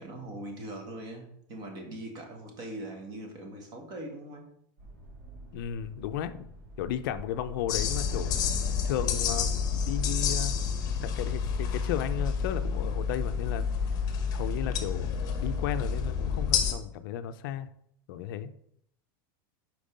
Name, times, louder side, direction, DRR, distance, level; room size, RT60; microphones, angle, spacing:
voice 1, 0.0-4.5, right 1 dB, 35° right, 2 dB, 1.6 m, -41 dB
sound 1, 4.8-16.3, right 1 dB, 60° right, 1.7 m, -44 dB
voice 2, 5.5-6.5 6.8-8.4 8.8-13.6 14.3-17.7 18.1-18.5, left 10 dB, 65° left, 11 dB, 0.5 m, -34 dB
sound 2, 7.7-16.7, left 6 dB, 30° left, 0.9 m, -29 dB
5.3 x 4.6 x 5.1 m, 0.72 s
supercardioid pair, 155°, 12 cm